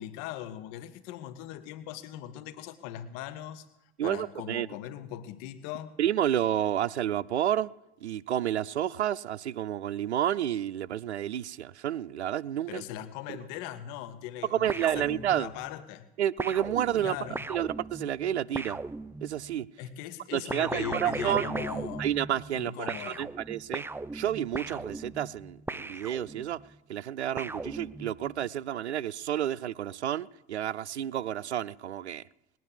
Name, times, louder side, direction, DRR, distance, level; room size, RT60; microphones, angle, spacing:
voice 1, 0.0-3.7 4.0-5.9 12.7-16.1 17.0-17.4 19.8-22.1 22.5-23.3, left 11 dB, 55° left, 1.4 m, -40 dB
voice 2, 4.0-4.7 6.0-7.7 8.0-12.8 13.3-13.4 14.5-15.5 16.2-17.2 17.5-18.8 19.2-19.7 20.3-21.5 22.0-23.8 24.1-26.6 26.9-32.2, right 11 dB, 80° right, 0.6 m, -30 dB
sound 1, 14.7-15.7 16.4-19.5 20.5-22.6 22.9-26.6 27.4-28.4, right 3 dB, 5° right, 0.5 m, -38 dB
20.0 x 9.2 x 7.3 m
figure-of-eight pair, 65°, 33 cm